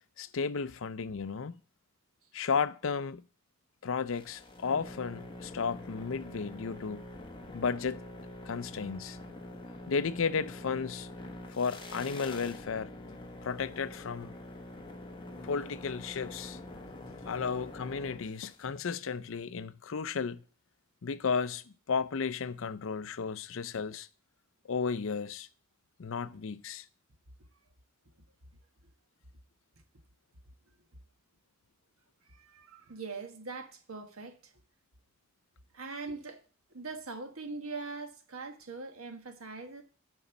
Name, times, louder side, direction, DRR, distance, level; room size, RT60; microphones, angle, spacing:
voice 1, 0.2-1.6 2.3-3.2 3.8-7.0 7.5-8.0 8.5-9.2 9.9-11.1 11.5-12.9 13.4-14.4 15.4-16.6 17.3-20.4 21.0-24.1 24.7-25.5 26.0-26.8, left 5 dB, 65° left, 0.5 m, -33 dB
sound 1, 4.1-18.6, left 1 dB, 25° left, 1.2 m, -45 dB
voice 2, 32.2-34.5 35.7-36.4 36.7-39.8, right 3 dB, 75° right, 1.4 m, -42 dB
9.0 x 5.4 x 6.9 m
head